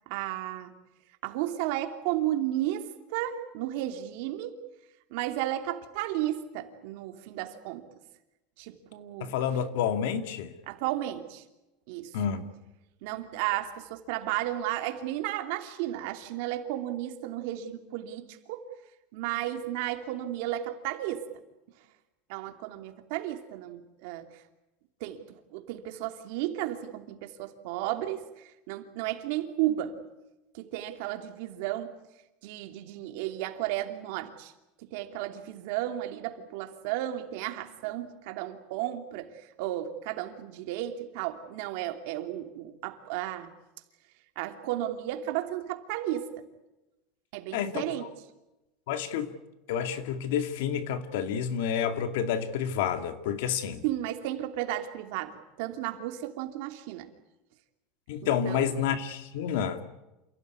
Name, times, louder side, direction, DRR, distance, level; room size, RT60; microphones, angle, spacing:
voice 1, 0.1-0.7 1.2-4.6 5.1-7.9 8.6-9.3 10.7-11.4 11.9-12.2 13.0-18.7 19.1-21.2 22.3-24.4 25.0-25.2 25.5-29.9 30.5-31.9 32.4-34.5 34.9-43.5 44.4-46.5 47.3-48.1 53.8-57.1 58.2-58.8, right 13 dB, 70° right, 2.8 m, -33 dB
voice 2, 9.2-10.5 12.1-12.4 47.5-48.1 48.9-49.3 49.7-53.8 58.1-59.8, left 8 dB, 80° left, 2.3 m, -29 dB
28.0 x 16.5 x 9.7 m
supercardioid pair, 150°, 0 cm